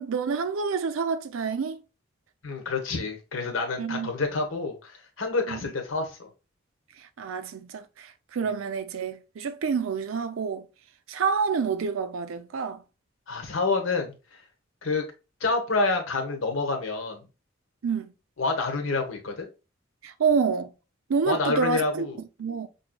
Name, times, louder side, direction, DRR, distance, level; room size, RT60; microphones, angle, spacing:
voice 1, 0.0-1.8 3.8-4.1 5.5-5.6 7.0-10.7 11.1-12.8 17.8-18.1 20.0-20.7 21.1-22.7, right 5 dB, 80° right, 0.5 m, -28 dB
voice 2, 2.4-6.3 13.3-14.1 14.8-15.0 15.4-17.2 18.4-19.5 21.3-22.2, left 3 dB, 75° left, 1.0 m, -28 dB
5.3 x 2.7 x 2.2 m
head